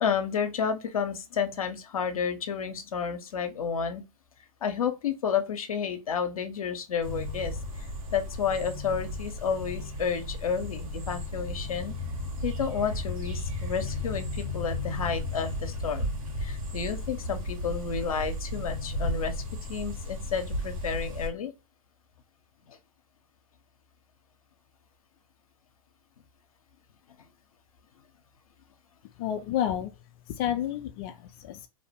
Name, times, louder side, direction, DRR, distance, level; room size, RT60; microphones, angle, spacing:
voice 1, 0.0-4.0 4.6-11.9 12.4-16.1 16.4-19.4 19.7-21.5 22.7-22.8, left 6 dB, 85° left, 0.7 m, -31 dB
sound 1, 7.0-21.3, left 1 dB, 75° right, 1.3 m, -34 dB
voice 2, 29.2-29.9 30.3-31.7, left 10 dB, 45° left, 0.4 m, -30 dB
2.6 x 2.1 x 3.3 m
hypercardioid pair, 115°, 18 cm